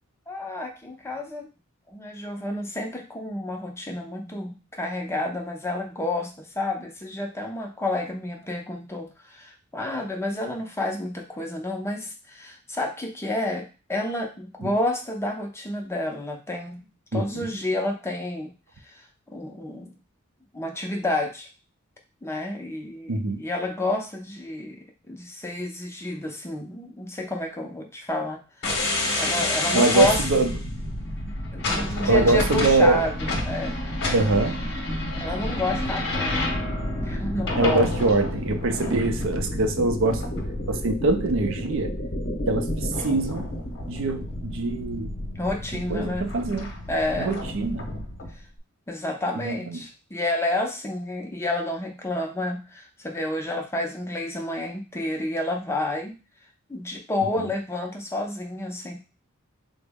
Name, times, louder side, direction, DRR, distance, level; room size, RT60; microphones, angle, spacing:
voice 1, 0.3-1.5 1.9-16.8 17.1-18.5 19.3-19.9 20.5-21.5 22.2-24.8 25.1-30.2 31.5-33.1 33.5-33.8 35.2-36.5 37.0-37.8 45.4-46.3 46.9-47.4 48.9-56.1 56.7-59.0, left 1 dB, 10° left, 2 dB, 0.5 m, -30 dB
voice 2, 17.1-17.5 23.1-23.4 29.7-30.5 32.1-33.0 34.1-34.6 37.6-40.3 40.7-41.9 42.5-43.5 43.9-45.2 45.7-46.7 47.2-47.9 49.4-49.8 57.4-57.5, right 2 dB, 65° right, 7 dB, 0.5 m, -23 dB
sound 1, 28.6-48.3, left 1 dB, 50° left, 0.8 m, -29 dB
3.7 x 2.0 x 3.4 m, 0.33 s
head